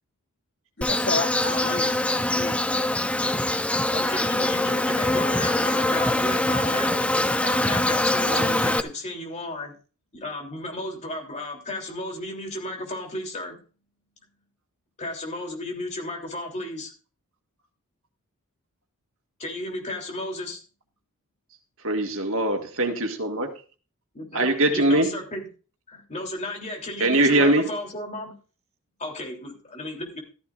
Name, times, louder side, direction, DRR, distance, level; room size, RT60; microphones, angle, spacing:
voice 1, 0.8-2.8, left 3 dB, 55° left, 2.1 m, -32 dB
Insect, 0.8-8.8, left 1 dB, 5° left, 0.5 m, -23 dB
voice 2, 3.9-9.7 10.1-13.6 15.0-16.9 19.4-20.6 24.1-25.4 25.9-28.3 29.0-30.2, left 1 dB, 30° left, 3.4 m, -34 dB
voice 3, 21.8-23.5 24.3-25.1 27.0-27.6, right 2 dB, 65° right, 1.9 m, -22 dB
14.5 x 13.5 x 2.6 m
head